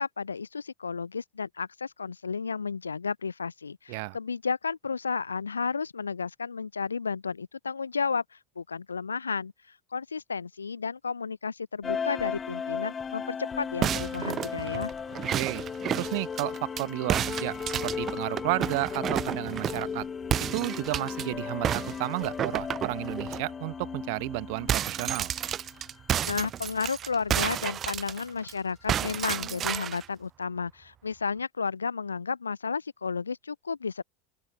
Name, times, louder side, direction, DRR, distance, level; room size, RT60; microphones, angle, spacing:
voice 1, 0.0-8.2 8.6-9.5 9.9-14.9 26.2-34.0, left 5 dB, 80° left, 0.6 m, -32 dB
sound 1, 11.8-26.0, left 6 dB, 25° left, 2.0 m, -36 dB
sound 2, 13.8-16.8 17.1-19.9 20.3-21.2 21.6-23.4 23.8-24.0 24.2-28.5 28.9-30.1, right 10 dB, 35° right, 0.4 m, -31 dB
voice 2, 15.9-20.1 20.5-25.3, right 29 dB, 55° right, 0.8 m, -32 dB
open air
figure-of-eight pair, 75°, 0 cm